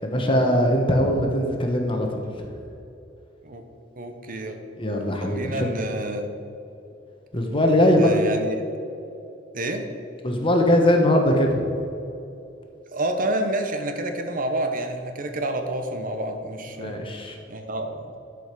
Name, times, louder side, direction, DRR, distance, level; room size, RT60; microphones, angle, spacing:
voice 1, 0.0-2.5 4.8-5.7 7.3-8.1 10.2-11.6 16.8-17.4, left 1 dB, 30° left, 2 dB, 1.2 m, -21 dB
voice 2, 4.0-4.6 5.2-6.3 7.9-8.6 9.5-9.9 12.9-17.0 17.5-18.2, right 1 dB, 50° right, 6 dB, 0.9 m, -28 dB
11.5 x 5.1 x 6.0 m, 2.8 s
head